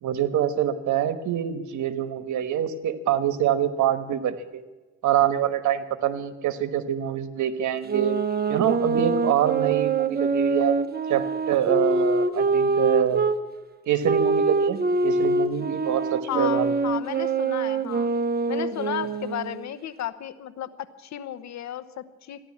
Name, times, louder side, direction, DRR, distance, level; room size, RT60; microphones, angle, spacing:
voice 1, 0.0-4.6 5.0-8.2 8.5-10.8 11.1-13.2 13.9-16.7, right 10 dB, 75° right, 12 dB, 1.3 m, -25 dB
sound 1, 7.9-13.4 14.0-19.6, right 3 dB, 30° right, 1.1 m, -24 dB
voice 2, 16.3-18.1 18.5-22.4, left 11 dB, 65° left, 12 dB, 1.0 m, -33 dB
14.0 x 11.0 x 8.5 m, 1.2 s
cardioid pair, 90°, 30 cm